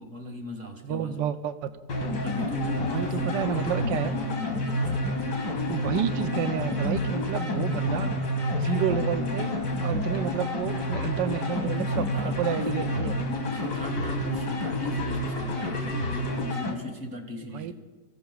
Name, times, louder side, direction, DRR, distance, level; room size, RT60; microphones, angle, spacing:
voice 1, 0.0-1.2 2.2-5.2 11.9-12.4 13.5-17.7, equal, 30° right, 3 dB, 1.6 m, -37 dB
voice 2, 0.8-1.7 2.8-4.1 5.7-8.1 8.6-9.5 9.8-13.2 17.5-17.7, right 9 dB, 75° right, 10 dB, 1.3 m, -30 dB
sound 1, 1.9-16.8, left 1 dB, 65° left, 2.1 m, -29 dB
24.5 x 15.0 x 2.3 m, 1.3 s
omnidirectional pair, 2.0 m